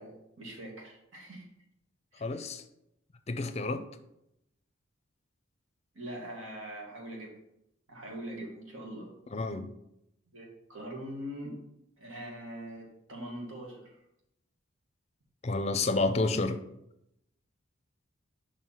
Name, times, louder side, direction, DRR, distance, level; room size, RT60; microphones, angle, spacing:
voice 1, 0.0-1.5 2.1-2.4 5.9-7.3 7.9-9.1 10.3-11.6 12.0-13.9, right 1 dB, 75° right, 1.9 m, -42 dB
voice 2, 2.2-2.6 3.3-3.9 9.3-9.7 15.4-16.6, left 3 dB, 30° left, 0.5 m, -29 dB
5.6 x 4.7 x 5.7 m
head